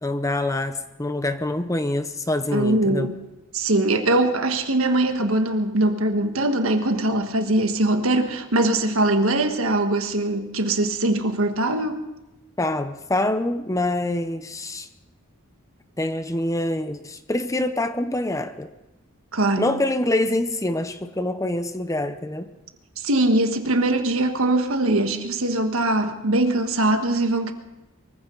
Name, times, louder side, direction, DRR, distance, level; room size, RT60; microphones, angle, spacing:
voice 1, 0.0-3.1 12.6-14.9 16.0-18.7 19.6-22.5, left 1 dB, 15° left, 10 dB, 0.7 m, -25 dB
voice 2, 2.5-3.1 3.5-12.1 19.3-19.7 23.0-27.5, right 2 dB, 75° right, 6 dB, 1.5 m, -22 dB
23.5 x 15.0 x 3.9 m, 0.97 s
head